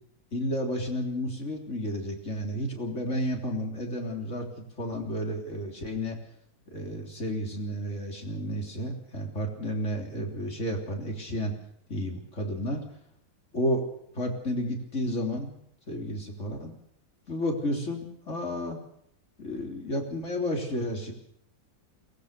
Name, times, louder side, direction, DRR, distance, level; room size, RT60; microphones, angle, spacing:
voice 1, 0.3-6.2 6.7-11.5 11.9-12.9 13.5-13.8 14.1-15.5 15.9-16.7 17.3-18.8 19.4-21.1, equal, 35° left, 2 dB, 3.9 m, -31 dB
22.5 x 19.5 x 6.8 m, 0.71 s
omnidirectional pair, 2.0 m